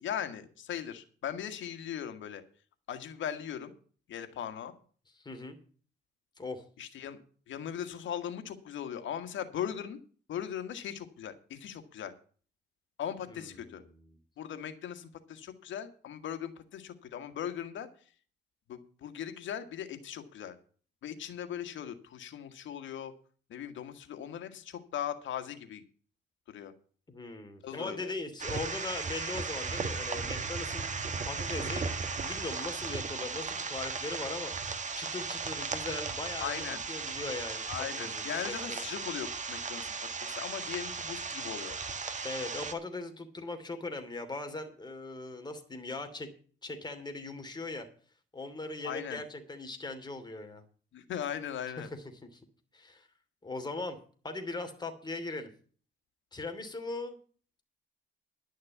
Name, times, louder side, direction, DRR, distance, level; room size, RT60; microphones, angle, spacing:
voice 1, 0.0-2.4 2.9-3.7 4.1-4.7 6.8-7.2 7.5-10.0 10.3-12.1 13.0-13.8 14.4-17.9 18.7-20.6 21.0-23.1 23.5-25.8 26.5-26.7 27.6-28.1 36.4-36.8 37.7-41.8 48.8-49.2 50.9-51.9, left 9 dB, 75° left, 8 dB, 1.7 m, -39 dB
voice 2, 5.2-5.6 6.4-6.6 13.3-14.1 27.1-30.9 31.3-37.6 37.9-38.8 42.2-46.3 46.6-47.9 48.3-50.6 51.8-52.0 52.3-52.4 52.7-53.1 53.4-54.0 54.2-55.5 56.3-57.2, left 2 dB, 20° left, 6 dB, 2.8 m, -40 dB
sound 1, 28.4-42.7, right 5 dB, 35° right, 1.7 m, -36 dB
11.5 x 6.5 x 8.3 m, 0.43 s
cardioid pair, 90°, 20 cm